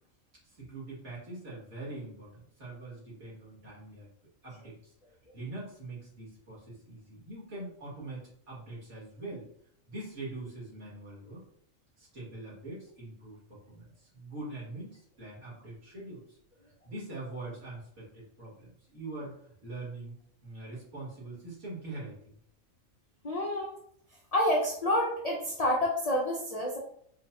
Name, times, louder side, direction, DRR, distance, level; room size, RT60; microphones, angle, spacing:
voice 1, 0.4-4.1 4.4-4.9 5.3-9.5 9.9-11.4 12.0-16.4 16.8-22.4, right 2 dB, 60° right, -8 dB, 2.1 m, -43 dB
voice 2, 23.2-23.7 24.3-26.8, left 1 dB, 80° left, -2 dB, 0.3 m, -28 dB
4.9 x 2.2 x 2.6 m, 0.68 s
omnidirectional pair, 1.4 m